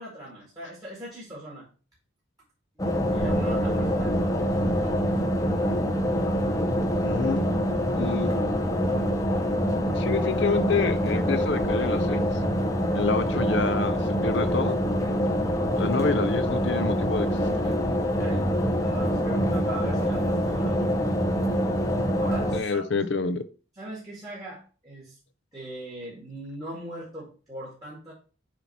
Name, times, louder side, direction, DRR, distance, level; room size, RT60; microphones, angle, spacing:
voice 1, 0.0-1.7 3.1-5.1 18.2-18.5 18.8-21.0 22.2-22.8 23.7-25.2 25.5-28.1, right 1 dB, 20° right, 2.0 m, -40 dB
sound 1, 2.8-22.6, equal, 15° left, 0.7 m, -25 dB
voice 2, 7.0-7.5 8.0-8.4 9.9-12.2 12.9-14.8 15.8-17.3 17.6-17.7 22.5-23.4, left 4 dB, 60° left, 0.6 m, -28 dB
7.2 x 3.0 x 5.7 m
head